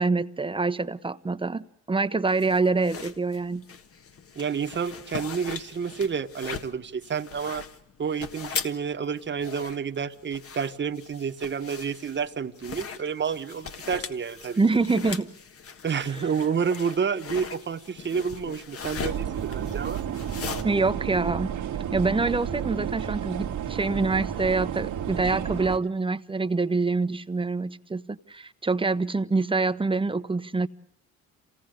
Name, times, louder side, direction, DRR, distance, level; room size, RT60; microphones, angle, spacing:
voice 1, 0.0-3.6 14.6-15.3 20.6-21.6 21.9-30.7, right 3 dB, 15° right, 1.0 m, -26 dB
sound 1, 2.3-20.6, left 6 dB, 50° left, 1.6 m, -39 dB
voice 2, 4.3-7.6 8.0-14.6 15.8-20.0, right 6 dB, 35° right, 1.5 m, -29 dB
sound 2, 19.0-25.8, right 9 dB, 75° right, 1.7 m, -31 dB
27.5 x 17.5 x 6.6 m
cardioid pair, 90°, 30 cm